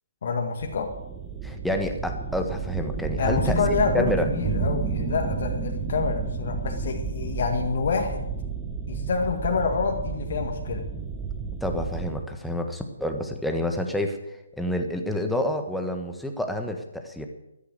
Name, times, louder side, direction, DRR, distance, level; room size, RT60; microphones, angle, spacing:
voice 1, 0.2-0.9 3.2-8.3 8.9-10.9, left 5 dB, 55° left, 2 dB, 1.9 m, -27 dB
sound 1, 0.6-12.2, right 5 dB, 15° right, 1.3 m, -31 dB
voice 2, 1.4-3.6 3.9-4.3 11.6-14.2 14.5-17.2, left 1 dB, ahead, 4 dB, 1.4 m, -28 dB
13.5 x 9.8 x 8.1 m, 0.90 s
figure-of-eight pair, 140°, 0 cm